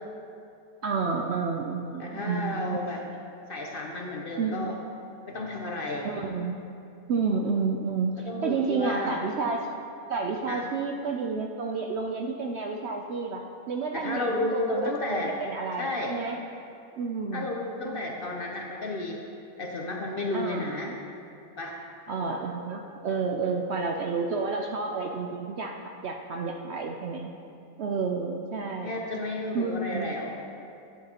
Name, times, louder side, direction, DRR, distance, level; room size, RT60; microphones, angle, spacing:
voice 1, 0.8-2.8 4.4-4.8 6.0-6.6 7.1-9.7 10.1-16.4 17.0-17.5 17.8-18.0 20.3-21.0 22.1-27.3 27.8-29.0 29.5-30.2, right 4 dB, 65° right, 2 dB, 0.7 m, -30 dB
voice 2, 2.0-3.0 3.5-4.8 5.3-6.1 8.2-9.2 10.5-10.6 13.9-15.3 15.8-16.1 17.3-19.2 19.6-20.9 21.6-21.7 28.8-30.4, left 2 dB, 50° left, 0 dB, 0.7 m, -32 dB
11.0 x 9.6 x 2.9 m, 2.6 s
omnidirectional pair, 1.5 m